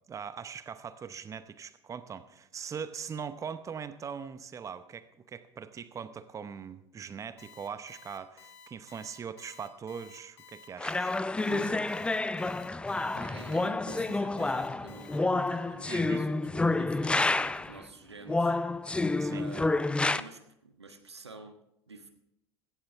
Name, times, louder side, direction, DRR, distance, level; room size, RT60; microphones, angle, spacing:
voice 1, 0.1-11.1 15.9-16.3 19.2-19.5, right 7 dB, 25° right, 13 dB, 0.8 m, -41 dB
Alarm, 7.4-15.2, left 6 dB, 70° left, 1.4 m, -53 dB
sound 1, 10.8-17.8 18.3-20.2, left 2 dB, 10° left, 0.5 m, -29 dB
voice 2, 11.5-12.0 13.0-18.6 19.3-19.7 20.1-22.1, right 3 dB, 85° right, 7 dB, 1.3 m, -48 dB
16.5 x 16.0 x 3.5 m, 0.80 s
figure-of-eight pair, 75°, 14 cm